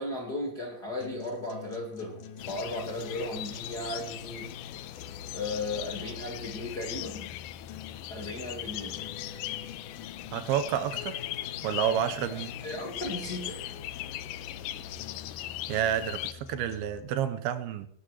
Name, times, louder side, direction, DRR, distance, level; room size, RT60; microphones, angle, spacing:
voice 1, 0.0-4.5 5.3-7.3 8.1-9.0 12.3-12.4 12.6-13.6, left 2 dB, 50° left, -1 dB, 1.2 m, -36 dB
sound 1, 1.0-17.0, left 6 dB, 70° left, 2.4 m, -46 dB
sound 2, 2.4-16.3, left 14 dB, 85° left, 2.7 m, -39 dB
voice 2, 10.3-11.2 11.6-12.5 15.7-17.9, right 10 dB, 80° right, 9 dB, 2.6 m, -29 dB
19.0 x 17.0 x 3.0 m, 0.68 s
omnidirectional pair, 4.5 m